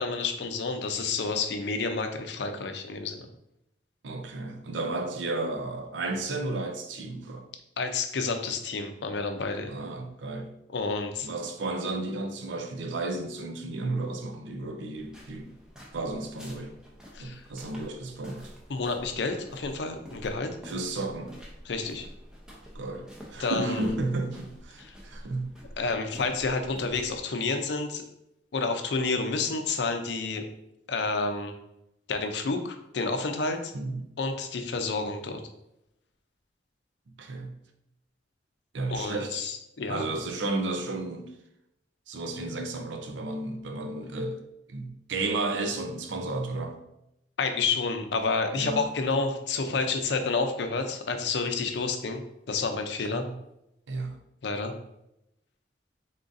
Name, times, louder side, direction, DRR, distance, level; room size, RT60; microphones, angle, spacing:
voice 1, 0.0-3.3 7.8-9.7 10.7-11.3 17.1-17.4 18.7-20.5 21.7-22.1 23.4-23.9 24.8-24.9 25.8-28.0 28.5-30.5 30.9-31.5 32.1-33.7 34.2-35.4 38.9-40.1 47.4-53.2 54.4-54.7, left 4 dB, 65° left, 0.5 m, -29 dB
voice 2, 4.0-7.5 9.7-10.5 11.2-15.5 15.9-16.7 17.2-18.5 20.7-21.4 22.7-25.6 33.7-34.0 37.2-37.6 38.7-39.4 39.9-41.3 42.1-44.4 44.7-46.8 48.5-48.8 53.1-53.3 53.9-54.2, right 2 dB, 85° right, 0.6 m, -33 dB
sound 1, 14.9-27.2, equal, 5° right, 0.6 m, -48 dB
3.9 x 3.7 x 2.5 m
head